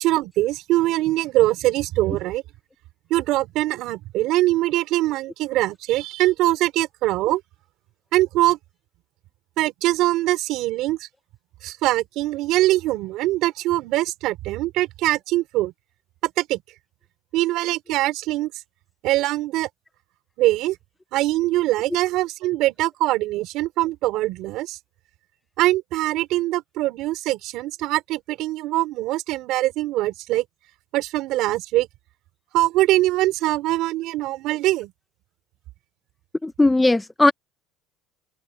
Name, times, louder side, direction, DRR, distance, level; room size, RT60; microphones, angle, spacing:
voice 1, 0.0-2.4 3.1-7.4 8.1-8.6 9.6-11.1 11.6-15.7 16.2-16.6 17.3-18.5 19.0-19.7 20.4-20.8 21.1-24.8 25.6-30.4 30.9-31.9 32.5-34.9, right 17 dB, 55° right, 3.8 m, -22 dB
voice 2, 36.4-37.3, left 2 dB, 5° left, 0.8 m, -18 dB
cardioid pair, 150°, 0 cm